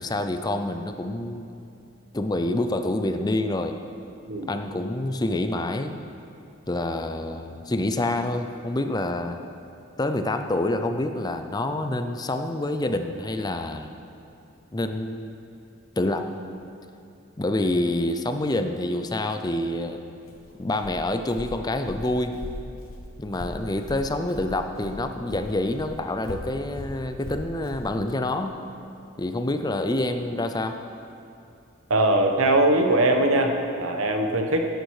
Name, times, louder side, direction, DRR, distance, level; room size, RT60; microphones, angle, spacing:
voice 1, 0.0-1.5 2.1-3.7 4.5-6.0 6.7-9.4 10.0-13.9 14.7-15.4 16.0-16.3 17.4-20.0 20.6-22.3 23.2-28.6 29.2-30.8, left 1 dB, 20° left, 7 dB, 0.5 m, -27 dB
Walk footsteps, 20.2-25.0 25.3-27.9, left 1 dB, 80° left, 1.6 m, -39 dB
voice 2, 31.9-34.7, right 1 dB, 80° right, 4 dB, 1.3 m, -21 dB
17.0 x 9.1 x 4.9 m, 2.6 s
head